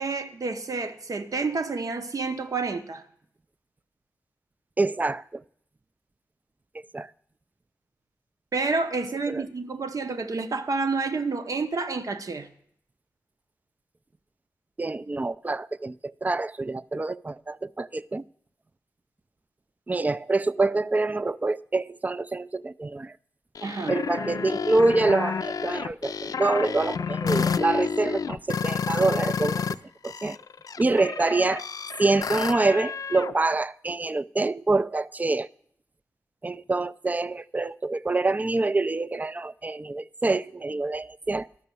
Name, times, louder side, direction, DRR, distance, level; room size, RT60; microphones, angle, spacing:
voice 1, 0.0-3.0 8.5-12.5 23.6-24.0 30.9-31.0, right 4 dB, 65° right, 0.9 m, -29 dB
voice 2, 4.8-5.4 6.9-7.1 9.3-9.4 14.8-18.2 19.9-23.1 23.9-29.6 30.0-30.4 30.8-31.7 32.0-35.5 36.4-41.5, right 3 dB, 25° right, 0.3 m, -26 dB
sound 1, 23.5-29.7 30.0-33.3, left 6 dB, 70° left, 0.4 m, -30 dB
12.0 x 6.0 x 6.8 m
cardioid pair, 50°, 6 cm